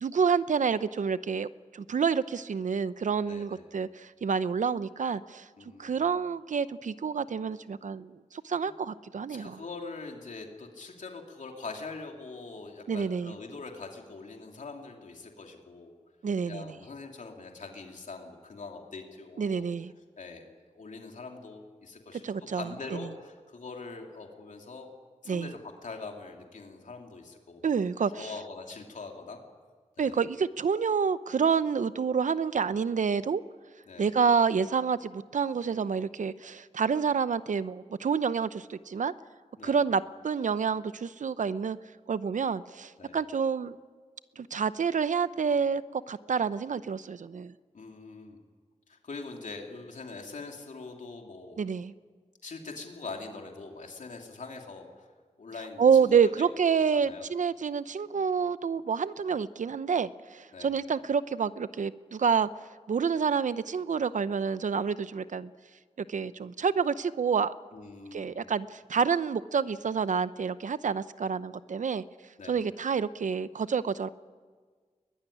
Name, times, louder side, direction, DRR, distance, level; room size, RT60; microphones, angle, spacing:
voice 1, 0.0-5.5 5.8-9.6 12.9-13.4 16.2-16.7 19.4-19.9 22.2-23.1 25.3-25.5 27.6-28.3 30.0-33.4 34.0-39.1 39.6-41.8 42.1-43.8 44.4-47.5 51.6-51.9 55.8-62.5 62.9-65.5 66.1-67.5 68.1-72.0 72.5-74.1, right 6 dB, 85° right, 15 dB, 0.7 m, -28 dB
voice 2, 3.3-3.6 5.6-6.1 8.6-8.7 9.3-15.9 16.4-19.7 20.2-20.5 20.7-24.9 25.2-27.7 28.1-29.4 30.0-30.2 33.9-34.1 39.6-39.8 43.0-43.2 47.7-48.4 48.9-51.6 52.4-55.1 55.4-56.5 56.9-57.3 60.5-60.7 67.7-68.4 72.4-72.6, left 3 dB, 85° left, 2 dB, 2.8 m, -43 dB
22.0 x 20.5 x 10.0 m, 1.5 s
wide cardioid pair, 80°, 13 cm